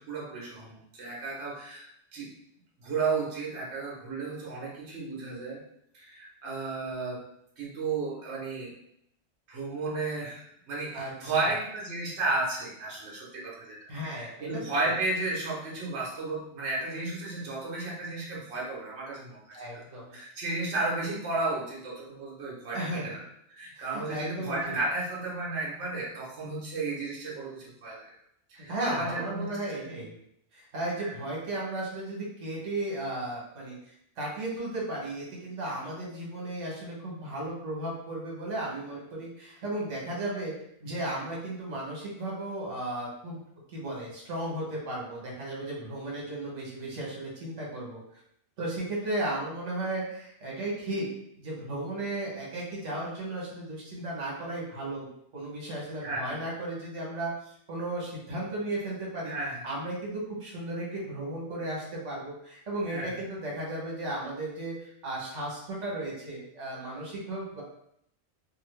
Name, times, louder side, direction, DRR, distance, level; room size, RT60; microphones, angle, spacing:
voice 1, 0.0-2.3 2.8-5.6 5.9-7.2 7.6-8.7 9.5-19.8 20.1-28.1 28.5-30.0 31.0-31.1 56.0-56.4 59.2-59.7 62.9-63.1, right 3 dB, 65° right, -4 dB, 1.1 m, -33 dB
voice 2, 13.9-14.6 19.5-20.2 22.7-23.1 23.8-24.8 28.5-30.2 30.5-40.5 40.8-43.4 43.7-48.0 48.6-51.1 51.4-55.1 55.3-59.3 59.6-67.6, right 1 dB, 85° right, -3 dB, 1.3 m, -35 dB
2.8 x 2.5 x 3.1 m, 0.73 s
omnidirectional pair, 1.2 m